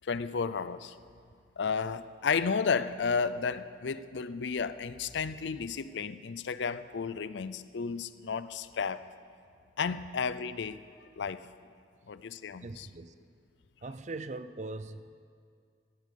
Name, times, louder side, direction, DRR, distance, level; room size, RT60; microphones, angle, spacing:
voice 1, 0.0-0.9 1.6-9.0 9.8-10.8 11.2-11.5 12.1-12.9, left 5 dB, 70° left, 15 dB, 0.5 m, -32 dB
voice 2, 12.6-13.1 13.8-15.1, right 2 dB, 40° right, 12 dB, 0.5 m, -40 dB
15.5 x 7.5 x 10.0 m, 2.2 s
head